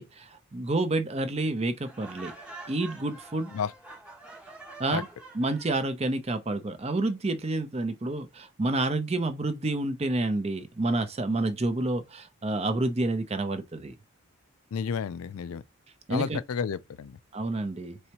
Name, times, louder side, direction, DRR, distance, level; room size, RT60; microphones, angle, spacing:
voice 1, 0.0-2.3 2.7-3.5 4.8-5.0 5.3-14.0 16.1-16.4 17.3-18.0, right 2 dB, 30° right, 0.5 m, -29 dB
Laughter, 1.8-5.9, right 2 dB, 5° right, 0.9 m, -46 dB
voice 2, 14.7-15.6 16.1-17.2, left 6 dB, 75° left, 0.4 m, -31 dB
4.1 x 3.3 x 2.8 m
head